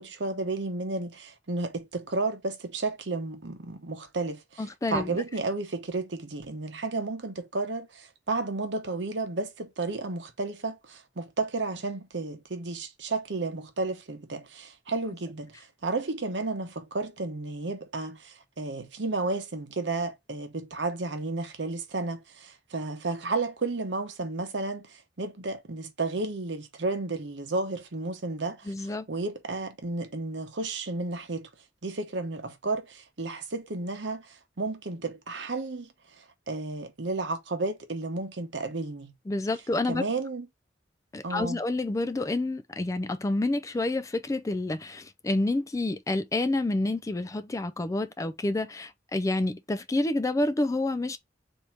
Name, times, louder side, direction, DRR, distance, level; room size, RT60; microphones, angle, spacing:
voice 1, 0.0-31.5 31.8-39.1 39.9-40.5 41.2-41.6, right 3 dB, 75° right, 1.0 m, -32 dB
voice 2, 4.6-5.2 28.7-29.1 39.3-40.0 41.1-51.2, left 2 dB, 20° left, 0.3 m, -28 dB
3.6 x 2.8 x 4.3 m
head